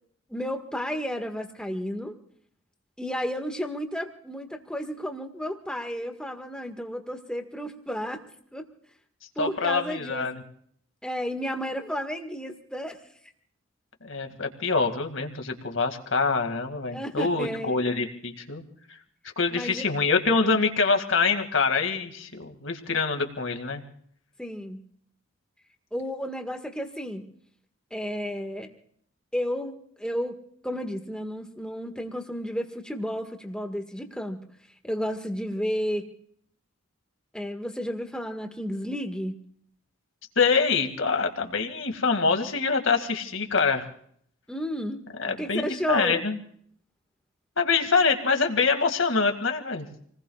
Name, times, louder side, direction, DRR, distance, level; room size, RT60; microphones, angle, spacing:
voice 1, 0.3-2.2 3.0-8.2 8.5-8.7 9.3-10.3 11.0-13.0 16.9-17.8 19.5-19.9 24.4-24.8 25.9-27.3 27.9-28.7 29.3-30.4 30.6-34.4 34.8-36.1 37.3-39.3 44.5-46.2, equal, 5° left, 4 dB, 1.7 m, -32 dB
voice 2, 9.4-10.4 14.0-18.6 19.4-23.8 40.4-43.8 45.2-46.4 47.6-49.9, left 4 dB, 65° left, 5 dB, 2.2 m, -25 dB
29.0 x 19.5 x 2.4 m, 0.62 s
head